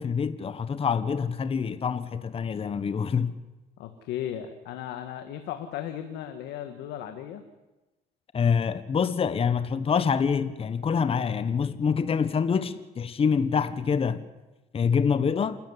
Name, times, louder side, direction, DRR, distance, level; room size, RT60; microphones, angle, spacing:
voice 1, 0.0-3.3 8.3-14.2 14.7-15.6, left 6 dB, 35° left, 1.3 m, -26 dB
voice 2, 3.8-7.4, left 10 dB, 85° left, 1.8 m, -36 dB
28.0 x 13.0 x 9.9 m
cardioid pair, 110°, 17 cm